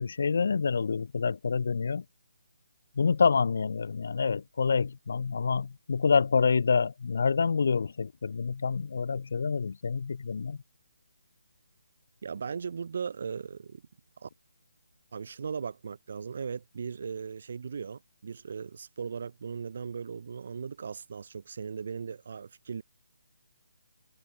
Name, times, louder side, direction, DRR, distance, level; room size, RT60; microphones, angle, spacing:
voice 1, 0.0-2.0 3.0-10.6, left 5 dB, 55° left, 0.8 m, -27 dB
voice 2, 12.2-13.8 14.2-14.3 15.1-22.8, right 6 dB, 50° right, 1.1 m, -38 dB
figure-of-eight pair, 145°, 0 cm